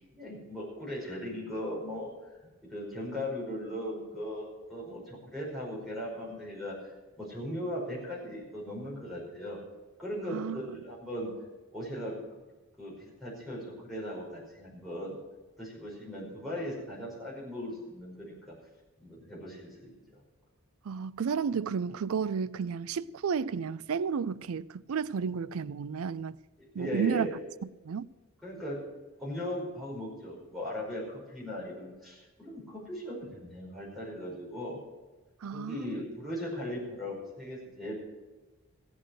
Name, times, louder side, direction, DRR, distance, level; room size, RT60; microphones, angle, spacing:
voice 1, 0.1-2.1 2.7-6.7 7.2-9.6 10.0-11.3 11.7-12.1 12.8-15.2 15.6-18.5 19.0-20.2 26.6-27.3 28.4-28.8 29.2-34.8 35.5-37.9, equal, ahead, 5.2 m, -38 dB
voice 2, 10.3-10.6 20.8-26.4 26.7-27.3 27.8-28.1 35.4-36.0, right 6 dB, 80° right, 0.4 m, -32 dB
15.0 x 9.0 x 6.4 m
head